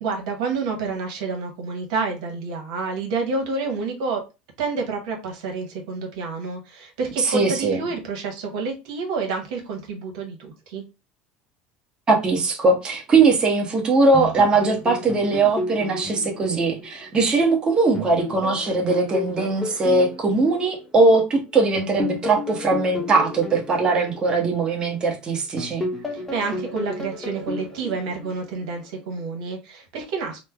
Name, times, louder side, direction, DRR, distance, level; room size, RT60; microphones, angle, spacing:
voice 1, 0.0-4.2 4.6-10.8 26.1-30.4, right 4 dB, 85° right, 2 dB, 1.0 m, -29 dB
voice 2, 7.2-7.8 12.1-25.9, right 3 dB, 25° right, 0 dB, 0.9 m, -20 dB
sound 1, 14.1-17.5 17.9-21.2 21.8-25.1 25.6-28.8, left 2 dB, 10° left, 0.8 m, -33 dB
3.1 x 2.0 x 3.3 m, 0.28 s
supercardioid pair, 130°, 4 cm